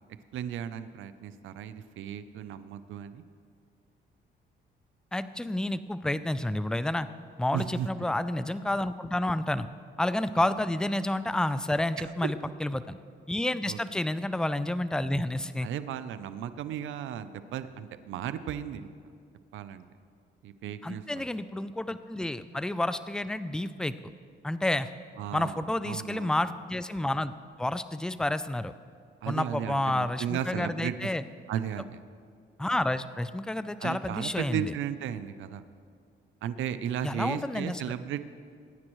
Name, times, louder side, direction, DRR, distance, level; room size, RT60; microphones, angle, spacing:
voice 1, 0.3-3.2 7.5-7.9 10.4-10.5 12.0-12.5 13.7-13.8 15.6-19.0 19.5-19.9 20.4-21.3 25.2-26.3 29.2-31.1 31.5-32.0 33.8-35.6 36.4-38.2, right 9 dB, 80° right, 12 dB, 0.6 m, -35 dB
voice 2, 5.1-7.1 7.4-9.7 10.0-13.0 13.3-15.7 20.8-23.9 24.4-24.9 25.3-27.3 27.6-28.7 29.3-31.2 32.6-34.7 37.0-37.8, left 1 dB, 5° left, 13 dB, 0.4 m, -30 dB
21.0 x 9.6 x 3.1 m, 2.2 s
cardioid pair, 90°, 20 cm